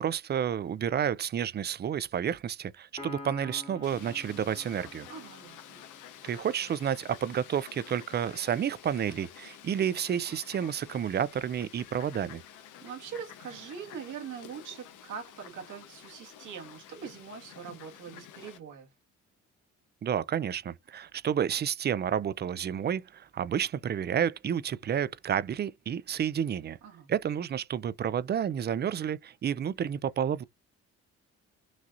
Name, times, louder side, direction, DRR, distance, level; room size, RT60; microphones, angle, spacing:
voice 1, 0.0-5.1 6.2-12.4 20.0-26.8 27.1-30.4, right 9 dB, 35° right, 0.4 m, -30 dB
Piano, 3.0-6.6, left 2 dB, 15° left, 1.2 m, -47 dB
Fowl, 3.8-18.6, left 10 dB, 85° left, 0.9 m, -50 dB
voice 2, 5.1-5.8 12.6-18.9 26.8-27.1, right 7 dB, 80° right, 1.7 m, -43 dB
6.0 x 2.7 x 2.4 m
cardioid pair, 90°, 30 cm